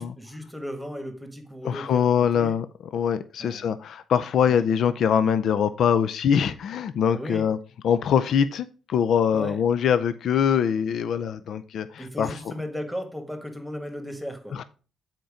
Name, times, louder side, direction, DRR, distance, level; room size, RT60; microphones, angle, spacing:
voice 1, 0.0-2.6 3.4-3.7 4.4-4.7 7.1-7.5 9.3-9.6 12.0-14.6, equal, ahead, 1.6 m, -36 dB
voice 2, 1.6-2.7 2.9-7.6 7.8-12.4 14.5-14.6, left 8 dB, 65° left, 0.4 m, -23 dB
7.9 x 4.5 x 5.0 m
cardioid pair, 90°, 0 cm